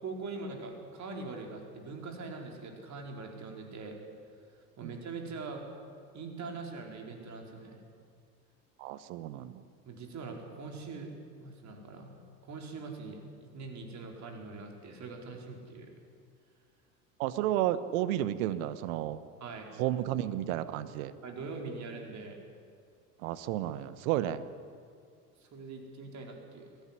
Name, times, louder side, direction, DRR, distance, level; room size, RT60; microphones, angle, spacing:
voice 1, 0.0-4.0 4.8-5.6 6.1-7.8 9.8-11.1 11.4-15.9 19.4-19.7 21.2-22.4 25.4-26.7, right 3 dB, 35° right, 2 dB, 4.7 m, -42 dB
voice 2, 8.8-9.6 17.2-19.2 19.8-21.1 23.2-24.4, right 13 dB, 60° right, 14 dB, 1.3 m, -32 dB
21.5 x 15.5 x 10.0 m, 2.3 s
figure-of-eight pair, 75°, 46 cm